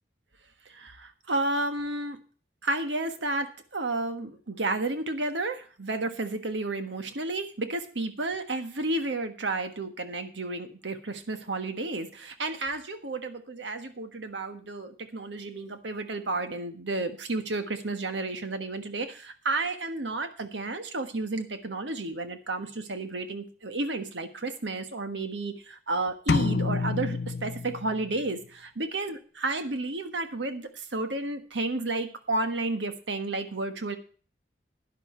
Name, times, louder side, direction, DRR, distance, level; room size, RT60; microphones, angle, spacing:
voice 1, 0.6-2.2 2.6-34.0, right 2 dB, 85° right, 7 dB, 1.4 m, -32 dB
sound 1, 26.3-28.3, left 4 dB, 60° left, 0.5 m, -28 dB
11.5 x 10.0 x 4.4 m, 0.40 s
head